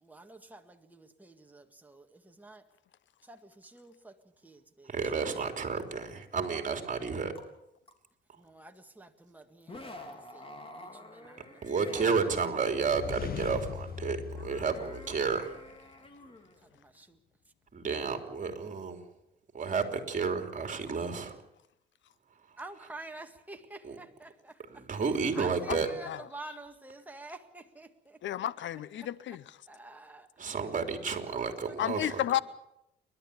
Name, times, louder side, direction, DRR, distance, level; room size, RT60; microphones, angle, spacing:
voice 1, 0.0-2.6 3.3-4.1 4.4-4.9 8.4-11.6 13.5-13.7 16.7-17.2 22.6-24.8 25.3-28.2 29.0-29.1 29.7-30.6 31.3-31.8 32.2-32.4, right 2 dB, 10° right, 1.8 m, -49 dB
voice 2, 4.9-7.3 11.6-15.5 17.7-19.0 19.5-21.4 23.8-24.0 24.7-25.9 30.4-32.2, right 5 dB, 40° right, 3.4 m, -31 dB
sound 1, 7.4-7.5 7.9-8.0 9.6-12.2 14.1-16.8, left 1 dB, 25° left, 3.4 m, -48 dB
sound 2, 12.7-15.7, left 8 dB, 50° left, 1.2 m, -40 dB
voice 3, 28.2-29.4 31.8-32.4, left 12 dB, 70° left, 0.8 m, -31 dB
29.5 x 12.0 x 8.5 m
cardioid pair, 90°, 20 cm